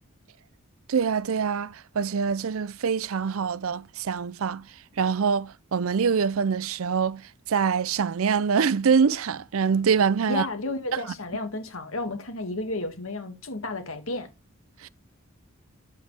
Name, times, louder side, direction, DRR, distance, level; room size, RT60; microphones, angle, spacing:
voice 1, 0.9-4.6 5.0-10.4 10.9-11.0 14.8-14.9, right 6 dB, 75° right, 0.5 m, -24 dB
voice 2, 10.3-14.3, left 2 dB, 75° left, 2.1 m, -32 dB
9.2 x 8.1 x 3.4 m
head